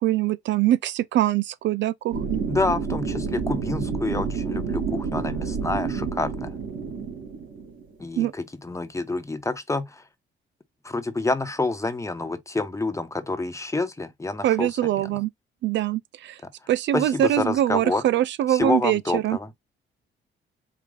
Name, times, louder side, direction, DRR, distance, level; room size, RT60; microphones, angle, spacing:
voice 1, 0.0-2.4 8.2-8.3 14.4-15.3 15.6-16.4 16.7-19.4, right 12 dB, 65° right, 0.4 m, -23 dB
sound 1, 2.1-8.0, right 5 dB, 85° right, 2.6 m, -29 dB
voice 2, 2.5-6.5 8.0-10.0 10.8-15.1 16.9-18.0 18.5-19.5, left 3 dB, 15° left, 1.0 m, -28 dB
4.9 x 2.3 x 3.8 m
cardioid pair, 90°, 20 cm